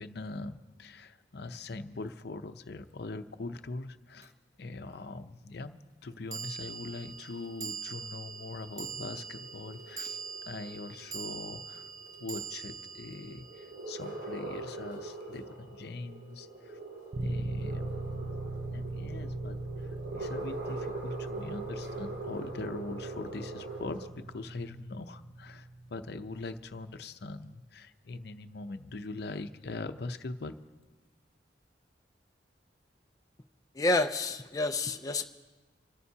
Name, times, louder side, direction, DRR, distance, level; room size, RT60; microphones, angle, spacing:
voice 1, 0.0-4.3 4.6-11.9 12.2-16.8 17.2-18.3 18.7-30.6, left 3 dB, 65° left, 9 dB, 0.7 m, -42 dB
sound 1, 4.2-4.3 6.3-14.7, right 6 dB, 20° right, 1.0 m, -43 dB
sound 2, 6.7-24.1, right 2 dB, 85° right, 2.8 m, -43 dB
sound 3, 17.1-26.9, right 2 dB, 55° right, 0.7 m, -40 dB
voice 2, 33.8-35.2, left 2 dB, 20° left, 5 dB, 0.4 m, -29 dB
27.0 x 14.0 x 2.8 m, 1.3 s
head